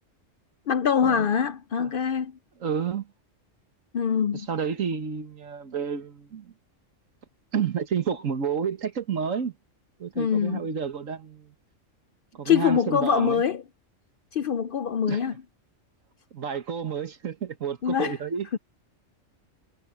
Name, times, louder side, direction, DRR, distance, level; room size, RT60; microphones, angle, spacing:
voice 1, 0.7-2.4 3.9-4.5 10.2-10.6 12.4-13.6 14.3-15.3 17.8-18.2, left 7 dB, 60° left, 0.6 m, -24 dB
voice 2, 2.6-3.1 4.3-6.5 7.5-9.5 10.0-11.5 12.3-13.4 15.1-15.2 16.3-18.5, right 7 dB, 85° right, 1.8 m, -30 dB
omnidirectional pair, 1.3 m